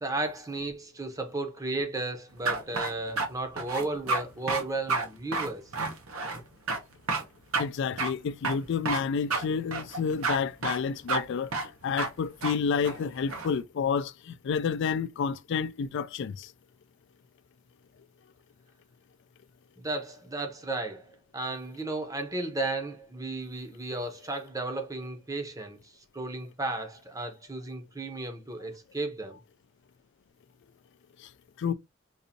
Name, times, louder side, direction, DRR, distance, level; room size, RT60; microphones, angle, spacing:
voice 1, 0.0-5.7 19.8-29.4, right 2 dB, 15° right, 0.7 m, -34 dB
sound 1, 2.4-3.3 3.6-4.2 4.5-4.6 4.9-5.1 5.3-6.4 6.7-6.8 7.1-7.2 7.5-7.6 8.0-8.1 8.4-9.0 9.3-9.4 9.7-10.4 10.6-10.8 11.1-11.2 11.5-11.7 12.0-12.1 12.4-12.5 12.8-13.5, right 3 dB, 90° right, 1.0 m, -29 dB
voice 2, 7.6-16.5 31.2-31.3 31.6-31.7, left 6 dB, 60° left, 0.3 m, -30 dB
3.9 x 2.6 x 2.7 m
head